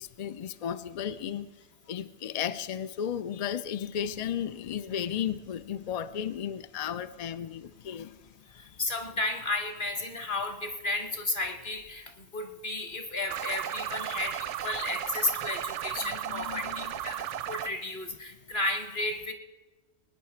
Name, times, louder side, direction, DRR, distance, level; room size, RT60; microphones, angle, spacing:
voice 1, 0.0-1.5 1.9-8.2 8.5-8.7 14.1-14.2 14.7-14.9 16.3-16.9, left 9 dB, 85° left, 12 dB, 0.3 m, -34 dB
voice 2, 8.8-19.3, left 2 dB, 45° left, 7 dB, 1.4 m, -33 dB
sound 1, 13.3-17.7, right 10 dB, 75° right, 0.9 m, -35 dB
19.5 x 9.5 x 4.5 m, 1.2 s
omnidirectional pair, 1.3 m